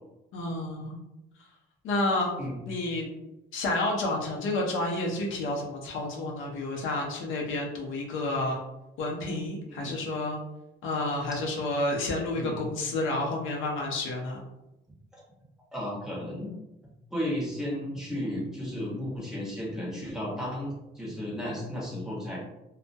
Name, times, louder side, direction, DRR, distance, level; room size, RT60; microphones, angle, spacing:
voice 1, 0.3-1.0 1.8-2.3 2.7-3.1 3.5-8.6 9.0-10.4 10.8-14.4, left 2 dB, 80° left, -1 dB, 0.6 m, -30 dB
voice 2, 15.7-16.5 17.1-22.4, left 1 dB, 5° right, -6 dB, 0.9 m, -34 dB
2.2 x 2.1 x 2.6 m, 0.92 s
cardioid pair, 90°, 20 cm